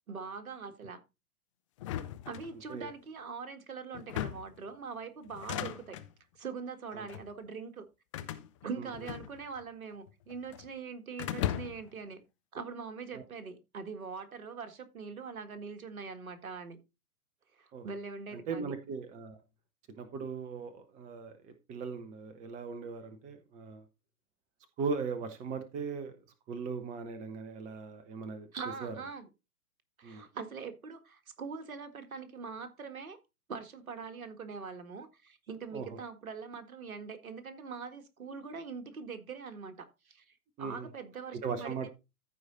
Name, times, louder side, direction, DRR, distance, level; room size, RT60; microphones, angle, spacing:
voice 1, 0.1-1.0 2.3-6.0 6.4-7.9 8.6-12.2 12.5-16.8 17.6-18.7 28.5-29.3 30.0-33.2 33.5-41.9, right 5 dB, 65° right, 1.9 m, -43 dB
sound 1, 1.8-2.9 3.9-4.6 5.3-6.1 6.9-7.3 8.1-9.7 9.9-10.7 11.2-12.0, left 12 dB, 20° left, 0.5 m, -38 dB
voice 2, 18.3-19.4 20.0-23.8 24.8-26.2 26.5-28.5 28.8-28.9 30.0-30.3 35.7-36.0 40.6-40.9 41.4-41.9, right 5 dB, 15° right, 0.9 m, -39 dB
14.5 x 4.9 x 3.9 m
figure-of-eight pair, 115°, 46 cm